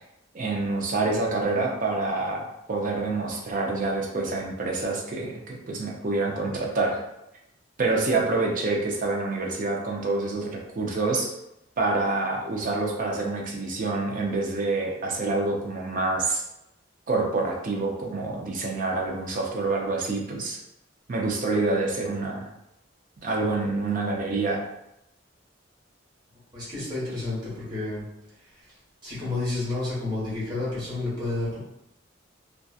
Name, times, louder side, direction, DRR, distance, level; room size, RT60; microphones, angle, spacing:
voice 1, 0.3-7.0 7.8-11.3 11.8-16.4 17.1-20.6 21.1-22.5 23.2-24.6, right 3 dB, 45° right, -1 dB, 0.5 m, -27 dB
voice 2, 26.5-28.0 29.0-31.6, left 2 dB, 25° right, -9 dB, 1.2 m, -30 dB
2.6 x 2.3 x 2.3 m, 0.84 s
head